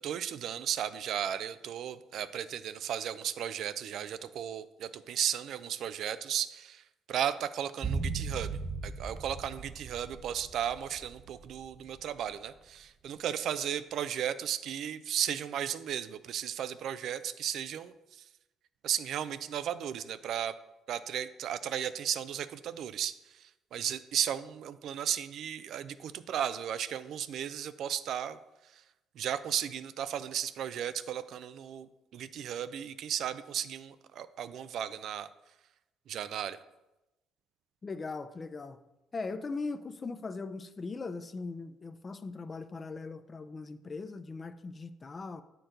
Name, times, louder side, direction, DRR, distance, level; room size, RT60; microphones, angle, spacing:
voice 1, 0.0-8.6 8.8-18.2 18.8-20.6 20.9-28.4 29.2-35.3 36.1-36.6, right 9 dB, 65° right, 13 dB, 0.3 m, -35 dB
sound 1, 7.8-12.1 12.3-12.4, right 4 dB, 30° right, 0.6 m, -37 dB
voice 2, 37.8-38.8 39.1-45.4, left 3 dB, 35° left, 12 dB, 0.5 m, -39 dB
7.5 x 4.5 x 3.8 m, 0.98 s
supercardioid pair, 70°, 0 cm